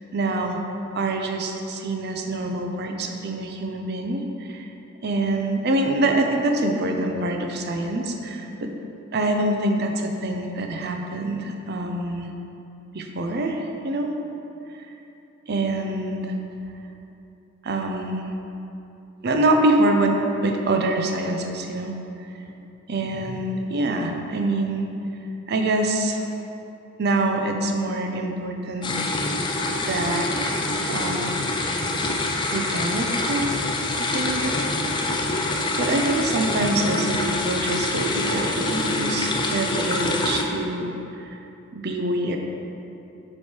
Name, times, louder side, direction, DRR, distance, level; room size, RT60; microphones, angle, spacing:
voice 1, 0.1-0.6 0.9-4.7 5.0-8.7 9.1-12.3 12.9-14.1 14.7-14.9 15.5-16.3 17.6-18.2 19.2-20.2 20.4-21.9 22.9-24.9 25.5-26.3 27.0-29.0 29.8-31.3 32.5-33.5 34.1-34.6 35.3-35.5 35.8-41.4 41.7-42.4, right 2 dB, 55° right, 3 dB, 0.5 m, -25 dB
sound 1, 28.8-40.4, left 2 dB, 25° left, 0.4 m, -25 dB
7.4 x 3.2 x 4.4 m, 2.8 s
head